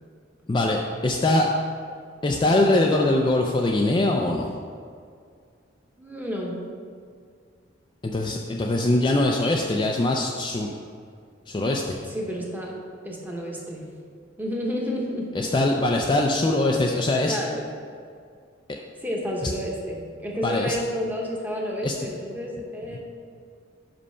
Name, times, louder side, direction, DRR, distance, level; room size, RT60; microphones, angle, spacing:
voice 1, 0.5-1.5 2.2-4.5 8.0-10.7 11.5-12.0 15.3-17.4 18.7-18.8 20.4-20.8 21.8-21.9 22.9-23.0, left 2 dB, 25° left, 0 dB, 0.4 m, -22 dB
voice 2, 6.0-6.6 12.0-12.7 13.0-13.8 14.4-15.3 17.3-17.6 19.0-23.0, equal, 10° right, -2 dB, 1.0 m, -30 dB
5.5 x 5.2 x 5.5 m, 2.2 s
head